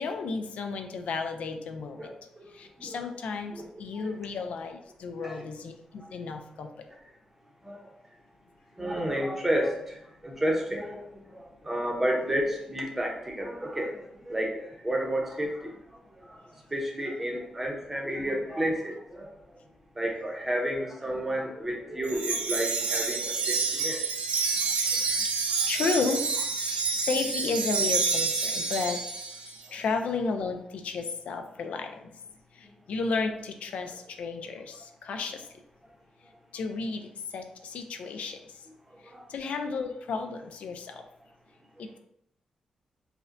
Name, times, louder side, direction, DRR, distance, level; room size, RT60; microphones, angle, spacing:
voice 1, 0.0-2.1 2.5-3.5 3.8-6.7 25.2-26.4 26.6-29.0 29.7-32.0 32.5-35.5 36.5-38.4 39.0-41.0 41.8-41.9, left 4 dB, 85° left, 6 dB, 0.4 m, -33 dB
voice 2, 6.0-6.3 6.9-7.0 7.6-7.9 8.8-16.3 16.7-19.3 20.0-24.0 25.5-25.6 29.7-29.8 39.0-39.2, right 1 dB, 15° right, 0 dB, 0.7 m, -31 dB
Wind chime, 22.0-29.5, right 4 dB, 80° right, 0.5 m, -28 dB
4.9 x 2.1 x 2.5 m, 0.78 s
wide cardioid pair, 150°, 2 cm